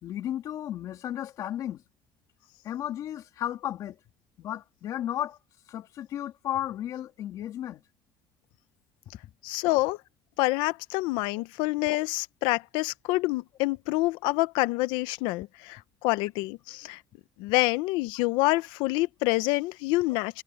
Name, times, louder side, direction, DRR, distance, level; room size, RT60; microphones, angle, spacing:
voice 1, 0.0-1.8 2.6-4.0 4.4-5.4 5.7-7.8 9.2-9.3, left 11 dB, 50° left, 3.1 m, -34 dB
voice 2, 9.4-10.0 10.4-17.0 17.4-20.4, left 21 dB, 85° left, 0.8 m, -27 dB
cardioid pair, 160°, 8 cm